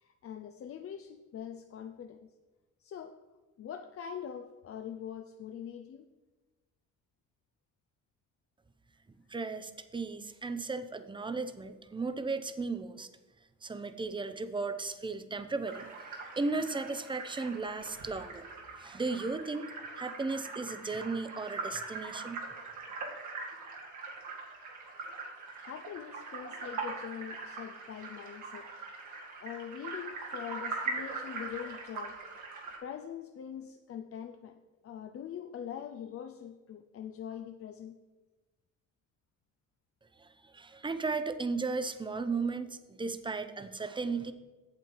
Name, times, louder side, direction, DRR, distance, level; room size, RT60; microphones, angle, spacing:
voice 1, 0.0-2.3 2.8-3.2 3.6-6.1 25.6-28.8 29.4-32.2 32.8-38.0, left 9 dB, 50° left, 6 dB, 0.5 m, -43 dB
voice 2, 9.3-13.1 13.6-16.1 16.4-18.5 18.8-22.4 40.2-44.3, right 3 dB, 15° right, 11 dB, 0.6 m, -35 dB
sound 1, 15.7-32.8, right 3 dB, 75° right, 2.0 m, -42 dB
8.5 x 7.3 x 4.6 m, 1.2 s
cardioid pair, 90°, 30 cm